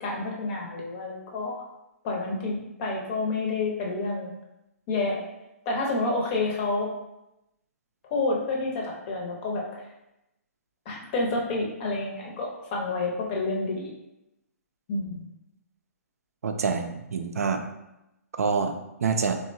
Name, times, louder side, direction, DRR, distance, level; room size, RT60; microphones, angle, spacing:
voice 1, 0.0-1.6 2.0-4.4 4.9-5.3 5.7-6.9 8.1-9.7 10.9-13.9 14.9-15.2, left 3 dB, 35° left, -2 dB, 0.7 m, -29 dB
voice 2, 16.4-17.6 18.4-19.4, right 5 dB, 70° right, 6 dB, 0.4 m, -26 dB
3.0 x 2.2 x 2.6 m, 0.90 s
figure-of-eight pair, 130°, 8 cm